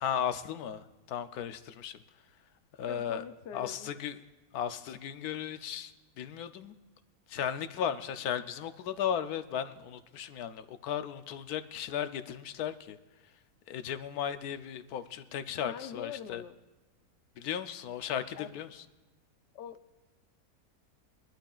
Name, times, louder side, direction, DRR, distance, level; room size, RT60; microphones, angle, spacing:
voice 1, 0.0-2.0 2.8-3.2 3.5-4.2 4.5-6.7 7.3-13.0 13.7-16.4 17.4-18.8, left 9 dB, 80° left, 10 dB, 1.2 m, -36 dB
voice 2, 2.9-3.9 15.6-16.6 18.3-18.6 19.5-19.8, left 8 dB, 60° left, 9 dB, 0.8 m, -43 dB
23.0 x 11.5 x 2.4 m, 1.2 s
omnidirectional pair, 1.6 m